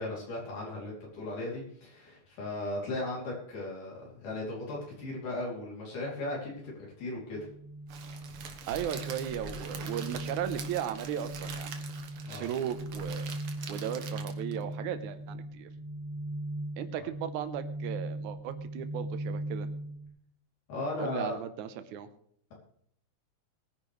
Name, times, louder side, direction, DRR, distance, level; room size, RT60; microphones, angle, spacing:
voice 1, 0.0-7.4 12.3-12.5 20.7-21.3, left 2 dB, 85° left, -4 dB, 4.7 m, -37 dB
sound 1, 7.3-20.1, right 1 dB, 35° right, 3.1 m, -39 dB
Crackle, 7.9-14.6, right 6 dB, 55° right, 1.8 m, -44 dB
voice 2, 8.7-11.7 12.3-13.3 13.7-15.7 16.8-19.7 21.0-22.1, right 10 dB, 75° right, 10 dB, 2.3 m, -36 dB
21.5 x 10.5 x 3.2 m, 0.65 s
omnidirectional pair, 3.6 m